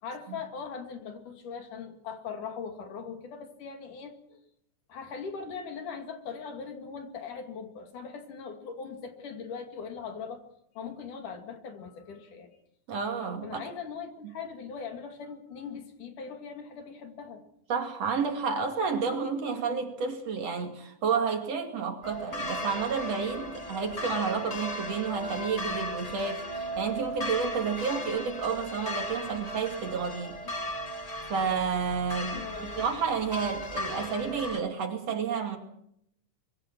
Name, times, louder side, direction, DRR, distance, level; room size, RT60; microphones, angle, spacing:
voice 1, 0.0-4.4 4.9-10.5 10.8-12.5 13.4-17.4 30.5-30.6 32.3-32.9, left 6 dB, 75° left, 4.0 m, -40 dB
voice 2, 12.9-13.6 14.2-14.3 17.7-30.4 31.3-32.5 32.8-35.6, right 5 dB, 55° right, 3.4 m, -30 dB
sound 1, 22.0-34.6, equal, 20° left, 1.0 m, -36 dB
25.0 x 23.0 x 6.2 m
omnidirectional pair, 3.6 m